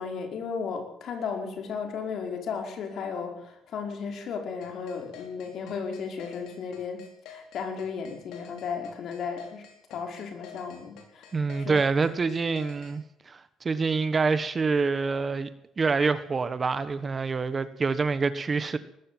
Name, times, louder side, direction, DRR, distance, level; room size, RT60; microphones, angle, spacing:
voice 1, 0.0-9.6 9.9-11.3 11.6-11.8, left 6 dB, 55° left, 3 dB, 5.1 m, -35 dB
sound 1, 4.6-13.0, left 9 dB, 80° left, 5.1 m, -49 dB
voice 2, 11.3-15.5 15.8-18.8, right 4 dB, 25° right, 12 dB, 1.3 m, -26 dB
19.5 x 14.5 x 9.2 m, 0.77 s
cardioid pair, 120°, 0 cm